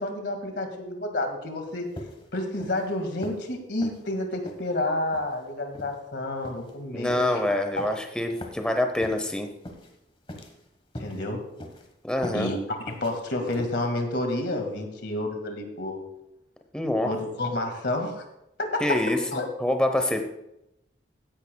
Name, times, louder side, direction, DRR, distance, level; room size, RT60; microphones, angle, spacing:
voice 1, 0.0-1.9 2.3-7.8 11.0-11.4 12.3-12.6 12.9-16.0 17.0-18.2 18.6-19.0 19.3-19.5, left 2 dB, 70° left, 4 dB, 2.0 m, -30 dB
sound 1, 2.0-2.3 2.6-2.9 3.2-3.5 3.8-4.0 4.5-4.7 5.1-5.3 5.7-6.0 6.4-6.8 7.1-7.3 7.8-8.0 8.4-8.7 9.0-9.3 9.6-9.9 10.3-10.6 11.0-11.2 11.6-11.9 12.2-12.5 12.9-13.1 13.5-13.7, left 1 dB, 30° left, 1.3 m, -40 dB
voice 2, 6.9-9.5 12.0-12.5 16.7-17.1 18.8-19.2 19.6-20.2, left 1 dB, 5° left, 5 dB, 0.8 m, -25 dB
15.5 x 10.5 x 2.3 m, 0.84 s
head